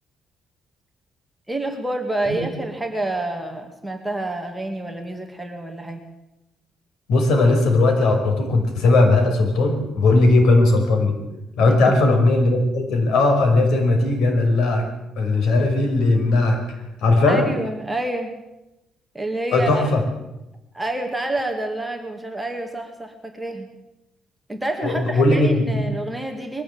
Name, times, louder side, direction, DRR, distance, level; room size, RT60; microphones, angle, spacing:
voice 1, 1.5-6.0 11.7-12.0 17.3-18.3 19.1-19.8 20.7-23.7 24.5-26.6, right 2 dB, 5° right, 3 dB, 2.2 m, -28 dB
voice 2, 7.1-11.2 11.6-14.9 15.2-16.6 17.0-17.5 19.5-20.0 24.8-25.6, left 2 dB, 85° left, 4 dB, 5.6 m, -18 dB
22.0 x 15.0 x 8.8 m, 0.94 s
cardioid pair, 155°, 0 cm